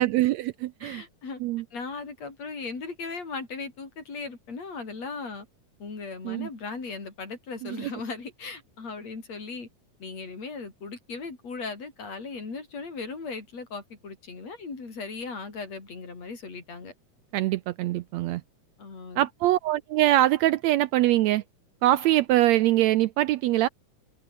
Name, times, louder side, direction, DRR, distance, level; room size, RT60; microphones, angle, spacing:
voice 1, 0.0-1.0 1.4-1.6 6.2-6.5 7.6-7.9 17.3-18.4 19.2-21.4 21.8-23.7, right 15 dB, 80° right, 1.7 m, -23 dB
voice 2, 0.8-1.4 1.7-5.5 5.8-9.7 10.0-16.9 18.8-19.3, left 4 dB, 55° left, 6.3 m, -37 dB
omnidirectional pair, 3.5 m